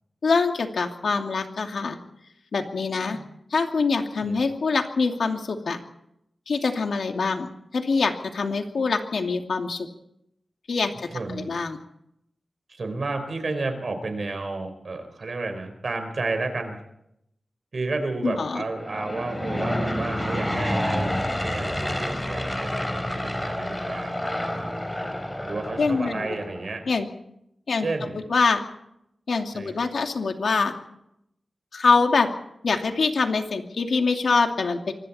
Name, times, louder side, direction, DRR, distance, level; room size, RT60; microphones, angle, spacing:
voice 1, 0.2-2.0 2.5-3.2 3.5-5.8 6.5-9.9 10.7-11.8 18.2-18.6 25.8-26.4 26.9-27.1 27.7-27.9 28.3-28.6 29.3-30.7 31.7-32.3 32.6-34.9, left 4 dB, 80° left, 4 dB, 2.5 m, -24 dB
voice 2, 11.1-11.5 12.7-16.8 17.7-24.7 25.4-26.9 27.7-28.2 29.5-29.9, right 3 dB, 55° right, 6 dB, 4.5 m, -32 dB
Aircraft / Engine, 18.7-26.7, left 1 dB, 10° left, 4.0 m, -29 dB
25.5 x 24.5 x 4.3 m, 0.79 s
wide cardioid pair, 130°, 0 cm